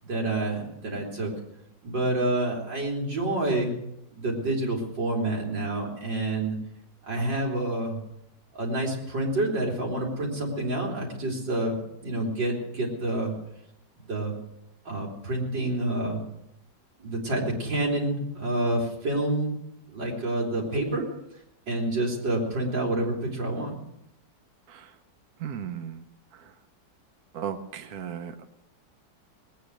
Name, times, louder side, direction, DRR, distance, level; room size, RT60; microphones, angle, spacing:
voice 1, 0.0-1.3 1.8-3.7 4.1-6.6 7.1-8.0 8.5-13.3 14.1-14.3 14.9-16.2 17.0-19.6 19.9-21.0 21.7-23.7, right 1 dB, 85° right, -1 dB, 4.1 m, -28 dB
voice 2, 25.4-26.0 26.3-26.5 27.3-28.5, right 8 dB, 60° right, 7 dB, 1.3 m, -36 dB
20.0 x 9.4 x 6.4 m, 0.82 s
omnidirectional pair, 1.9 m